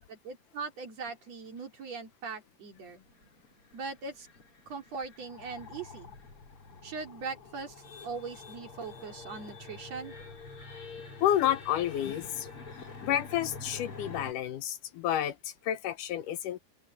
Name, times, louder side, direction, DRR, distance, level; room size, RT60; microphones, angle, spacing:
voice 1, 0.0-3.0 3.7-4.3 4.7-6.1 6.8-7.8 8.0-10.1, right 4 dB, 50° right, 3.9 m, -40 dB
sound 1, 2.8-14.3, left 4 dB, 40° left, 4.0 m, -47 dB
voice 2, 11.2-12.5 13.0-16.6, left 11 dB, 75° left, 2.3 m, -30 dB
open air
omnidirectional pair, 3.9 m